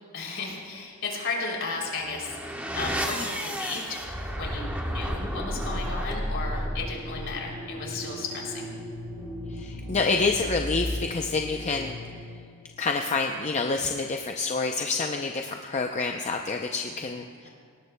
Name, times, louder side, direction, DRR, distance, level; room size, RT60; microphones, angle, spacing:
voice 1, 0.1-4.0 4.3-8.7 17.4-17.5, left 3 dB, 60° left, -1 dB, 3.1 m, -34 dB
sound 1, 1.8-12.5, equal, 5° right, 1.1 m, -33 dB
voice 2, 9.5-12.0 12.8-17.5, left 4 dB, 30° left, 3 dB, 0.5 m, -28 dB
18.5 x 18.5 x 2.2 m, 2.2 s
head